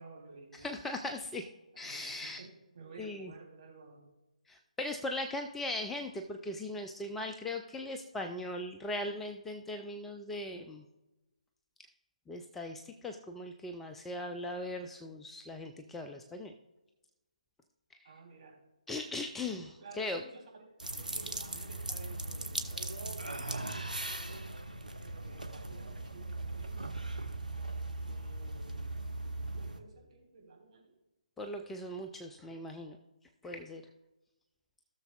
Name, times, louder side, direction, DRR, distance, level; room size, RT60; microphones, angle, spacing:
voice 1, 0.0-0.8 1.7-4.1 18.0-18.6 19.8-24.4 25.0-27.0 28.0-28.9 29.2-30.9, right 4 dB, 45° right, -2 dB, 3.1 m, -54 dB
voice 2, 0.6-1.5 1.8-2.4 3.0-3.3 4.5-10.8 12.3-16.5 18.9-20.2 31.4-33.0 33.4-33.8, left 1 dB, 5° left, 4 dB, 0.3 m, -39 dB
sound 1, 20.8-29.8, right 2 dB, 85° right, 1.1 m, -39 dB
16.0 x 6.7 x 2.3 m, 1.0 s
figure-of-eight pair, 145°, 4 cm